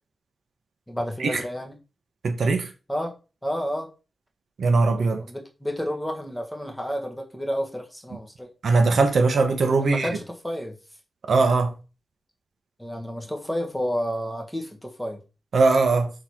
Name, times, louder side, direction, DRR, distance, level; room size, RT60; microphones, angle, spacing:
voice 1, 0.9-1.8 2.9-3.2 3.4-3.9 5.2-8.5 9.8-10.8 12.8-15.2, equal, 5° left, 1.6 m, -30 dB
voice 2, 2.2-2.7 4.6-5.2 8.6-10.1 11.3-11.7 15.5-16.1, right 3 dB, 70° right, 1.2 m, -20 dB
6.6 x 3.9 x 4.6 m
wide cardioid pair, 115°, 0 cm